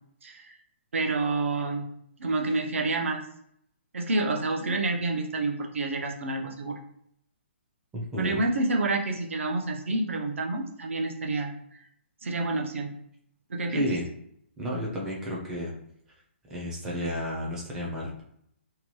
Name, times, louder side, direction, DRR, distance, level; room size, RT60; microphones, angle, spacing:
voice 1, 0.2-0.5 0.9-1.9 2.2-3.2 3.9-6.8 8.2-11.5 12.2-12.9 13.5-13.8, right 2 dB, 80° right, 3 dB, 0.7 m, -28 dB
voice 2, 7.9-8.4 13.7-14.0 14.6-15.7 16.5-18.2, equal, 5° right, -4 dB, 0.4 m, -31 dB
2.8 x 2.2 x 3.0 m, 0.70 s
hypercardioid pair, 175°, 7 cm